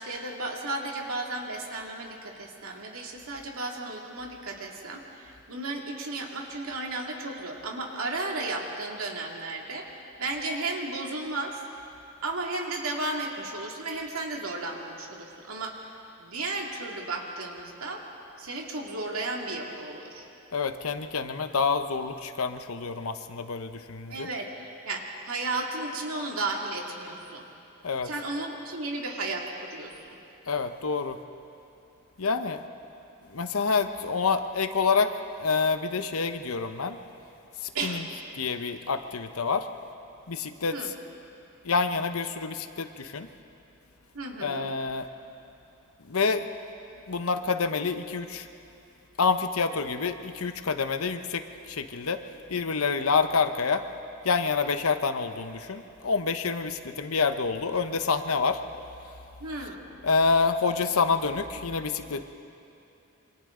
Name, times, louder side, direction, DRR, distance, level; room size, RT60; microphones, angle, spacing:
voice 1, 0.0-11.6 12.2-15.9 16.2-18.0 18.4-20.3 24.1-27.5 28.0-30.2 37.7-38.2 40.7-40.9 44.1-44.7 59.4-59.8, right 2 dB, 75° right, 0 dB, 2.4 m, -34 dB
voice 2, 20.5-24.3 27.8-28.1 30.5-31.2 32.2-32.6 33.3-35.1 35.4-37.0 37.6-38.1 38.4-39.7 40.3-40.9 41.6-43.3 44.4-45.1 46.1-46.5 47.1-48.5 49.2-52.2 52.5-53.9 54.2-58.6 60.0-62.2, left 4 dB, 75° left, 8 dB, 0.9 m, -27 dB
27.5 x 25.0 x 3.8 m, 2.8 s
head